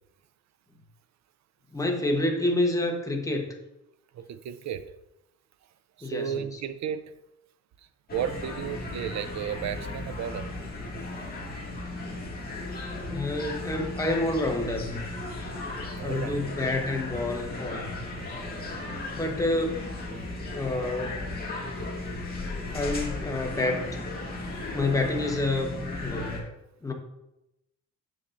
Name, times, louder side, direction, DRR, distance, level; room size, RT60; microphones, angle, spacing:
voice 1, 1.7-3.5 6.0-6.4 13.0-14.9 16.0-17.9 19.1-19.9 20.5-21.2 22.6-23.8 24.7-26.4 26.8-26.9, left 2 dB, 10° left, 1 dB, 1.0 m, -28 dB
voice 2, 4.1-4.9 6.0-7.2 8.1-10.5 16.0-16.5, right 8 dB, 60° right, 12 dB, 0.5 m, -33 dB
sound 1, 8.1-26.4, left 2 dB, 30° left, 1.8 m, -36 dB
7.3 x 6.5 x 2.5 m, 0.89 s
cardioid pair, 130°, 32 cm